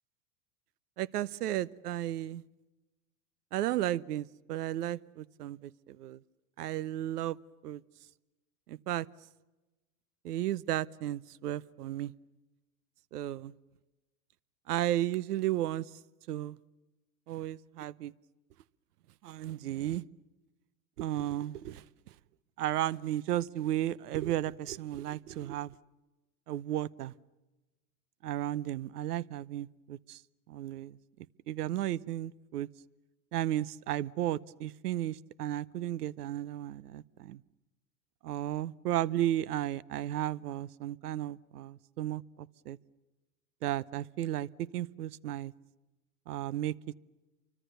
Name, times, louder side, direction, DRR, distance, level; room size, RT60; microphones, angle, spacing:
voice 1, 1.0-2.4 3.5-6.2 6.6-7.4 7.6-7.8 8.7-9.1 10.2-12.1 13.1-13.5 14.7-15.9 16.3-16.6 17.3-18.1 19.2-20.0 21.0-21.8 22.6-25.7 26.5-27.1 28.2-30.2 30.5-31.0 31.5-32.7 33.3-37.4 38.2-42.8 43.6-45.5 46.3-46.7, right 13 dB, 75° right, 20 dB, 0.9 m, -34 dB
29.0 x 24.5 x 6.9 m, 1.1 s
hypercardioid pair, 105°, 46 cm